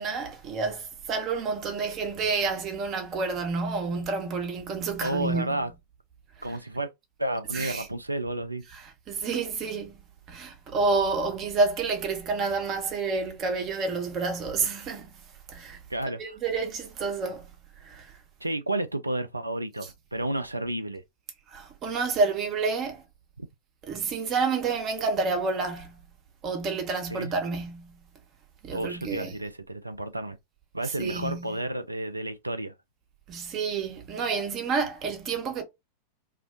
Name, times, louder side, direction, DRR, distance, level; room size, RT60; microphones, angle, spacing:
voice 1, 0.0-5.7 6.5-6.6 7.5-7.9 8.7-9.9 10.3-15.1 15.5-15.8 16.2-17.5 17.8-18.1 21.5-23.0 23.8-26.0 26.4-28.0 28.6-29.4 30.8-31.6 33.3-35.6, right 4 dB, 30° right, 0.8 m, -29 dB
voice 2, 5.0-5.7 6.4-6.9 7.2-8.6 15.9-16.2 18.4-21.0 23.4-23.5 27.1-27.3 28.7-30.4 30.7-32.7, right 1 dB, 85° right, 0.3 m, -31 dB
2.4 x 2.1 x 2.5 m
figure-of-eight pair, 90°, 0 cm